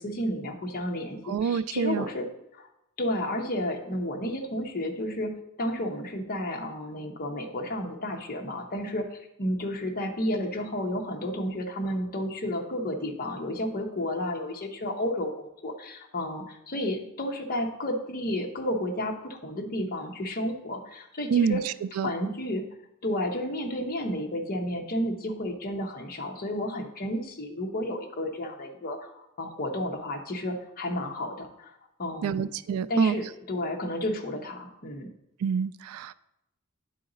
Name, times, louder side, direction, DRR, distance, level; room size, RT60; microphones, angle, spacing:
voice 1, 0.0-2.3 2.5-2.7 3.0-15.3 15.6-21.6 22.0-22.7 23.0-32.5 32.9-35.1, left 1 dB, 45° left, 2 dB, 0.9 m, -32 dB
voice 2, 1.3-2.1 21.3-22.1 32.2-33.2 35.4-36.1, right 7 dB, 75° right, 16 dB, 0.3 m, -27 dB
9.1 x 4.0 x 3.9 m, 0.84 s
head